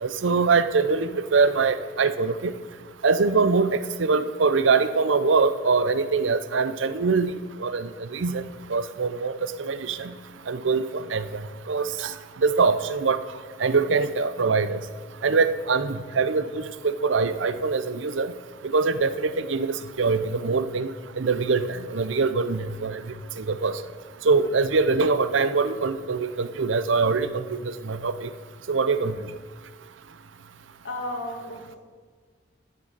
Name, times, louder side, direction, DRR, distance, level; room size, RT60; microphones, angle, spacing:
voice 1, 0.0-2.5 3.0-7.3 7.6-8.4 8.7-10.1 10.5-11.4 11.7-12.1 12.4-13.2 13.6-14.8 15.2-18.3 18.7-20.9 21.2-23.0 23.4-23.8 24.2-28.3 28.7-29.3, right 4 dB, 80° right, 12 dB, 0.6 m, -23 dB
voice 2, 30.8-31.8, left 1 dB, 80° left, 0 dB, 2.3 m, -33 dB
10.5 x 6.5 x 8.1 m, 1.5 s
head